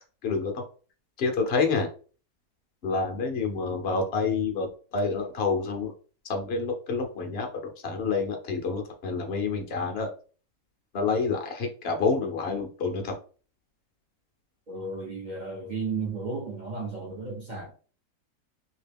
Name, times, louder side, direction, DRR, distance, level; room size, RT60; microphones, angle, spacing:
voice 1, 0.2-0.6 1.2-1.9 2.8-5.9 6.2-10.1 10.9-13.1, left 4 dB, 50° left, 0.9 m, -28 dB
voice 2, 14.7-17.7, right 4 dB, 40° right, 0.7 m, -34 dB
2.9 x 2.8 x 3.4 m
omnidirectional pair, 1.7 m